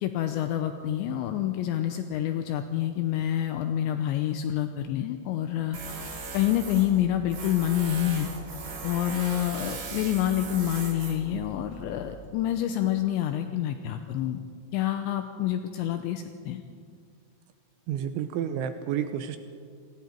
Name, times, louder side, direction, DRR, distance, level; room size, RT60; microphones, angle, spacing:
voice 1, 0.0-5.8 6.3-8.3 8.8-14.4 14.7-16.6, left 11 dB, 80° left, 7 dB, 2.8 m, -27 dB
Tools, 5.7-12.3, right 3 dB, 40° right, 3.7 m, -39 dB
voice 2, 17.9-19.4, right 9 dB, 80° right, 9 dB, 3.0 m, -30 dB
28.5 x 20.5 x 4.5 m, 2.2 s
omnidirectional pair, 5.8 m